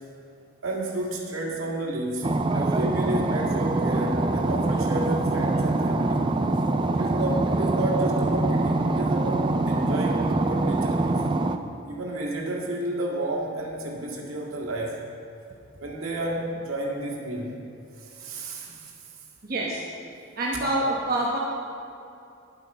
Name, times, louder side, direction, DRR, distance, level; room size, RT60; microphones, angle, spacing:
voice 1, 0.6-2.3 2.5-6.2 7.0-11.2 11.9-14.9 15.8-17.5 18.0-18.9, right 1 dB, 80° right, -3 dB, 2.0 m, -31 dB
sound 1, 2.2-11.6, right 2 dB, 25° right, 0.4 m, -24 dB
voice 2, 19.4-19.8 20.4-21.4, right 1 dB, 45° right, -4 dB, 1.1 m, -26 dB
10.5 x 7.9 x 5.5 m, 2.6 s
head